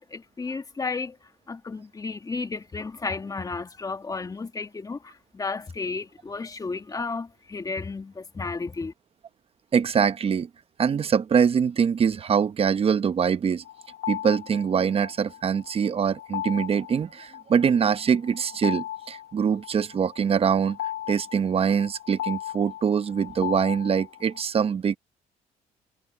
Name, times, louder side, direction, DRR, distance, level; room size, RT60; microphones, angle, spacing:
voice 1, 0.0-8.9, left 4 dB, 25° left, 1.9 m, -33 dB
voice 2, 9.7-10.5 10.8-13.6 14.1-25.0, right 7 dB, 40° right, 1.0 m, -24 dB
sound 1, 13.7-24.4, left 13 dB, 85° left, 2.8 m, -37 dB
cardioid pair, 90°, 14 cm